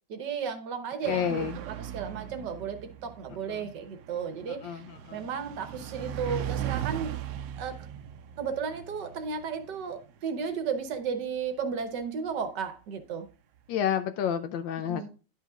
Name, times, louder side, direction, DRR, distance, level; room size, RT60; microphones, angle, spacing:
voice 1, 0.1-4.8 5.1-7.1 7.6-7.9 8.4-13.3 14.8-15.1, right 6 dB, 65° right, 1.6 m, -34 dB
sound 1, 1.0-12.0, right 10 dB, 85° right, 1.4 m, -39 dB
voice 2, 1.1-1.6 3.5-3.7 4.5-5.3 13.7-15.0, left 9 dB, 80° left, 1.3 m, -30 dB
11.0 x 5.8 x 2.3 m
omnidirectional pair, 2.0 m